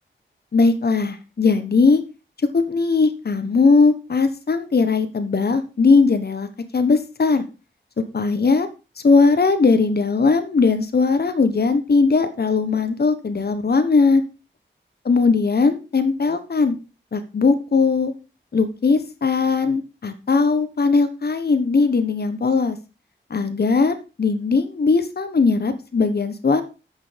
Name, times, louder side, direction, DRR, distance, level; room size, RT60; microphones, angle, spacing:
voice 1, 0.5-2.0 2.5-6.5 6.7-7.4 8.1-8.7 9.0-14.2 15.0-16.8 17.1-18.1 18.5-22.8 23.3-26.6, left 4 dB, 55° left, 10 dB, 1.2 m, -19 dB
9.4 x 6.4 x 5.2 m, 0.31 s
cardioid pair, 60°, 20 cm